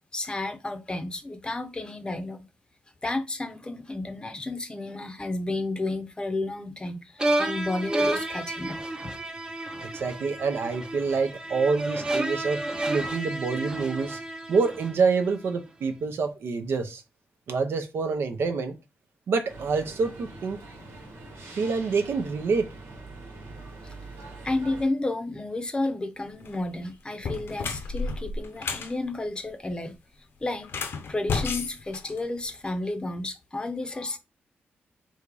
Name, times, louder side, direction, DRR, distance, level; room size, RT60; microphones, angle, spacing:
voice 1, 0.1-2.5 3.0-8.8 23.8-24.0 24.4-30.0 30.4-30.7 31.1-34.2, left 2 dB, 20° left, 0.7 m, -31 dB
sound 1, 7.2-15.4, right 1 dB, 20° right, 0.6 m, -31 dB
voice 2, 9.9-14.2 14.5-17.0 17.5-18.7 19.3-20.6 21.6-22.7, right 4 dB, 70° right, 0.8 m, -27 dB
sound 2, 19.5-24.8, right 2 dB, 90° right, 1.6 m, -43 dB
sound 3, 26.3-26.6 27.1-28.9 30.6-32.7, left 4 dB, 65° left, 0.7 m, -32 dB
3.6 x 2.7 x 4.7 m
wide cardioid pair, 120°, 4 cm